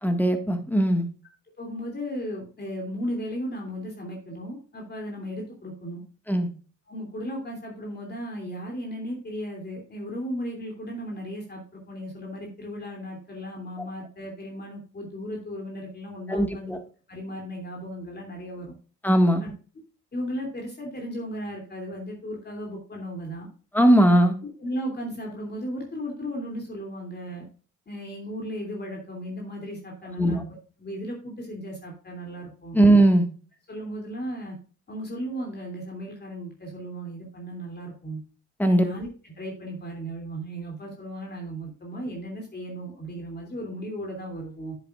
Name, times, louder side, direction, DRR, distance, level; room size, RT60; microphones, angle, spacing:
voice 1, 0.0-1.1 6.3-6.5 16.3-16.8 19.0-19.4 23.7-24.4 30.2-30.4 32.7-33.3 38.6-38.8, right 1 dB, 5° left, 6 dB, 1.7 m, -19 dB
voice 2, 1.6-6.0 6.9-16.8 17.1-18.8 19.4-19.5 20.1-23.5 24.6-27.5 27.9-30.4 30.8-32.8 33.7-34.6 34.9-38.2 38.6-44.8, equal, 35° left, 0 dB, 2.9 m, -35 dB
9.8 x 8.1 x 2.4 m, 0.38 s
cardioid pair, 90°, 30 cm